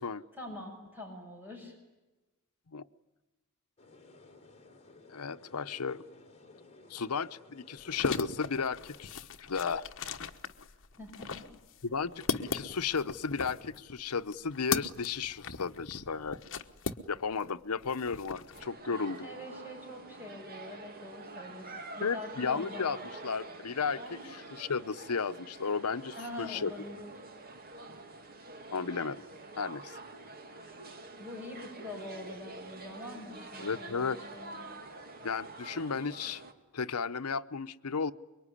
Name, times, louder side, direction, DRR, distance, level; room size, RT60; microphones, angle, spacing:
voice 1, 0.3-1.8 11.0-11.5 19.2-23.0 24.0-24.2 26.2-27.1 31.2-34.6, left 1 dB, 10° right, 6.3 m, -44 dB
sound 1, 3.8-9.1, left 3 dB, 30° left, 3.5 m, -56 dB
voice 2, 5.1-6.0 6.9-9.2 9.5-9.9 11.8-16.4 17.1-19.3 22.0-24.0 24.3-26.7 28.7-29.2 29.6-30.0 33.6-34.2 35.2-36.4 36.7-38.1, left 5 dB, 85° left, 0.8 m, -34 dB
sound 2, 7.8-17.5 17.8-18.6, left 4 dB, 60° left, 1.2 m, -37 dB
sound 3, 18.5-36.5, right 2 dB, 45° right, 2.5 m, -47 dB
25.0 x 23.0 x 9.9 m
head